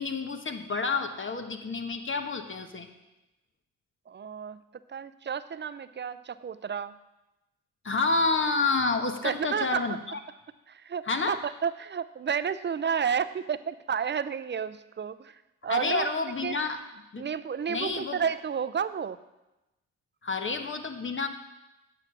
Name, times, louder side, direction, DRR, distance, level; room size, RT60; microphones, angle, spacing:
voice 1, 0.0-2.9 7.8-10.2 11.0-11.4 15.7-16.8 17.1-17.2 17.7-18.2 20.2-21.3, left 3 dB, 40° left, 6 dB, 1.2 m, -29 dB
voice 2, 4.1-4.6 4.9-6.9 9.2-9.8 10.7-15.4 15.6-16.1 16.4-16.6 17.2-19.2, right 7 dB, 35° right, 14 dB, 0.5 m, -31 dB
9.0 x 7.1 x 6.0 m, 0.98 s
supercardioid pair, 60°, 32 cm